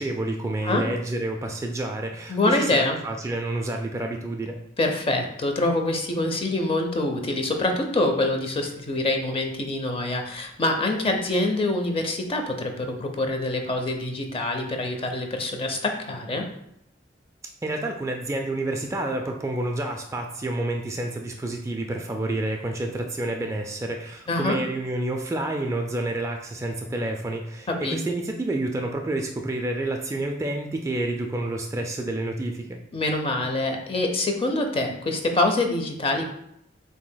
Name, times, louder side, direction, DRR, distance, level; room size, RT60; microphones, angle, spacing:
voice 1, 0.0-4.6 17.6-32.8, right 2 dB, 15° right, 3 dB, 0.3 m, -29 dB
voice 2, 2.3-3.0 4.8-16.4 24.3-24.6 27.7-28.0 32.9-36.2, left 2 dB, 30° left, 4 dB, 0.6 m, -25 dB
7.1 x 2.7 x 2.2 m, 0.75 s
head